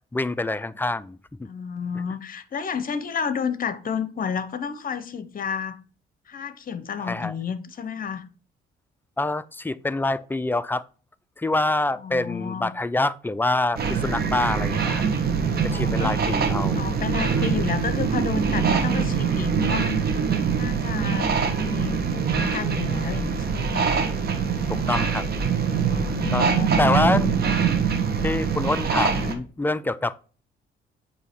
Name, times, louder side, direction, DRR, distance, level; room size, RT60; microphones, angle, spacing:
voice 1, 0.1-1.5 2.1-2.2 7.0-7.3 9.2-10.8 11.4-15.0 15.6-16.9 17.3-17.6 24.7-25.2 26.3-26.5 26.8-27.3 28.2-30.2, left 2 dB, 10° left, 0.3 m, -26 dB
voice 2, 1.4-5.8 6.3-8.2 12.0-12.7 15.7-16.1 16.8-20.1 20.5-23.9 25.9-27.2 29.1-29.3, left 6 dB, 45° left, 0.8 m, -31 dB
sound 1, 13.8-29.3, right 6 dB, 55° right, 1.1 m, -24 dB
8.3 x 2.8 x 4.4 m
cardioid pair, 90°, 20 cm